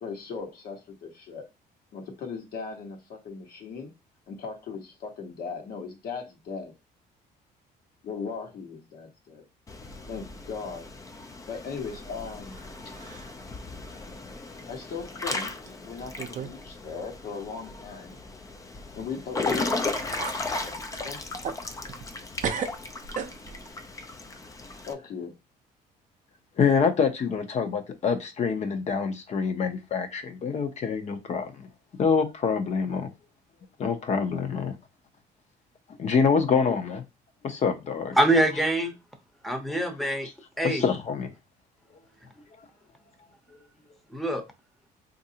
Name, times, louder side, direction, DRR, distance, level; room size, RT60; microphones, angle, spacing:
voice 1, 0.0-1.5 1.9-3.9 4.3-6.7 8.0-9.4 10.1-10.8 11.5-12.6 14.7-15.5 15.8-18.2 18.9-21.2 24.9-25.3 36.6-36.8, left 5 dB, 65° left, 1.2 m, -38 dB
Water / Splash splatter / Drip, 9.7-24.9, left 3 dB, 20° left, 0.4 m, -36 dB
sound 1, 11.8-12.7 12.9-13.4 13.9-14.0 14.8-14.9 15.7-15.8 16.2-16.6 16.8-17.0 19.5-19.6 19.9-20.4 20.9-22.2 22.4-23.7, right 6 dB, 45° right, 0.5 m, -35 dB
voice 2, 26.6-31.6 32.0-33.1 33.8-34.7 36.0-37.0 37.4-38.1 40.2-40.3 40.6-41.3, left 6 dB, 45° left, 0.7 m, -26 dB
voice 3, 38.2-38.9 39.4-40.3 40.6-40.8 44.1-44.4, right 1 dB, ahead, 0.8 m, -24 dB
4.0 x 2.6 x 2.8 m
cardioid pair, 110°, 17 cm